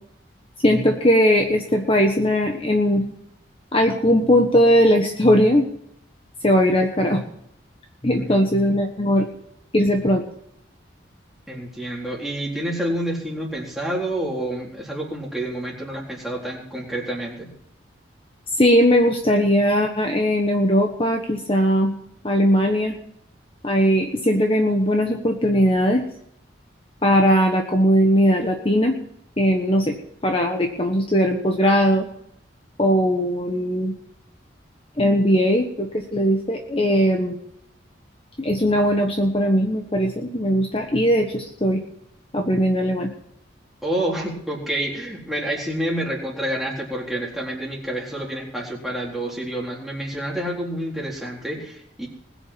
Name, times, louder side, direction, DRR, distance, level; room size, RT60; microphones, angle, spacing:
voice 1, 0.6-3.0 3.7-5.7 6.4-7.2 8.0-9.2 9.7-10.2 18.6-21.9 22.2-23.0 23.6-26.0 27.0-29.0 29.4-30.0 30.2-32.1 32.8-33.9 35.0-37.3 38.4-41.8 42.3-43.1, equal, 30° left, 3 dB, 1.3 m, -19 dB
voice 2, 11.5-17.5 43.8-52.1, right 1 dB, ahead, -3 dB, 3.8 m, -28 dB
20.5 x 7.2 x 7.5 m, 0.73 s
head